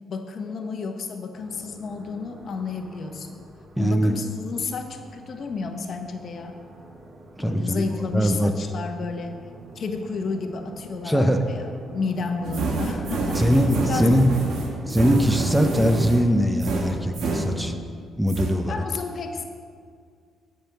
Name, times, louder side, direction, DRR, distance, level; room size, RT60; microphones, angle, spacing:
voice 1, 0.1-3.4 3.8-6.6 7.4-9.4 9.7-13.5 13.8-14.2 18.7-19.4, left 4 dB, 55° left, 5 dB, 1.1 m, -31 dB
sound 1, 1.3-15.6, right 2 dB, 50° right, 1.3 m, -46 dB
voice 2, 3.8-4.2 7.4-7.8 8.1-8.5 11.0-11.4 13.3-14.3 14.8-17.7 18.2-18.8, equal, 5° right, 6 dB, 0.7 m, -21 dB
sound 2, 12.4-18.0 18.3-18.5, right 3 dB, 75° right, 1.4 m, -27 dB
13.5 x 5.3 x 5.9 m, 2.1 s
cardioid pair, 90°, 0 cm